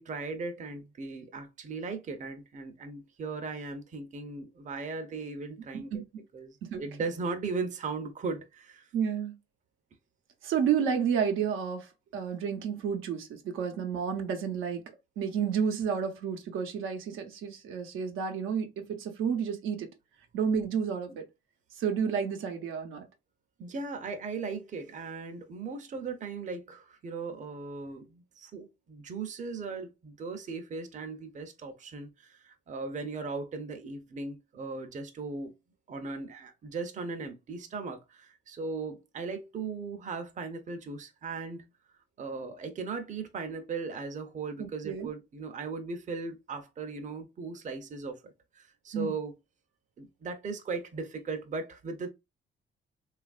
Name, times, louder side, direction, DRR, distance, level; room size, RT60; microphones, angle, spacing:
voice 1, 0.0-6.0 6.3-8.9 23.6-35.5 35.9-41.7 42.2-49.3 50.0-52.1, right 4 dB, 40° right, 0.6 m, -38 dB
voice 2, 8.9-9.3 10.4-14.8 15.2-19.9 20.3-21.2 21.7-23.0 44.6-45.1 48.9-49.1, right 7 dB, 90° right, 0.7 m, -31 dB
3.0 x 2.4 x 2.3 m
cardioid pair, 90°, 20 cm